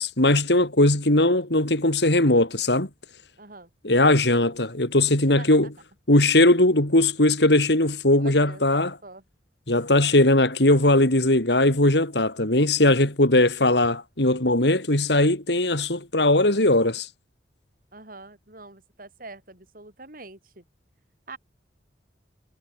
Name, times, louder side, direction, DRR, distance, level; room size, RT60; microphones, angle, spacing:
voice 1, 0.0-2.9 3.8-5.7 6.1-9.0 9.7-17.1, left 1 dB, 70° left, 4.0 m, -19 dB
voice 2, 3.4-3.7 5.3-5.6 8.2-8.6 9.0-9.2 17.9-20.6 21.3-21.4, right 3 dB, 50° right, 7.7 m, -44 dB
head